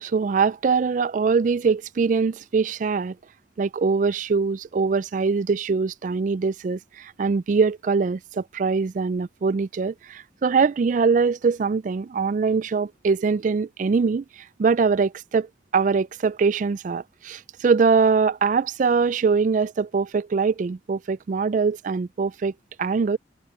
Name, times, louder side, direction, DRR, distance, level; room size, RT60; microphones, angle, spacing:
voice 1, 0.0-3.1 3.6-15.5 15.7-22.5 22.8-23.2, right 5 dB, 40° right, 0.3 m, -23 dB
head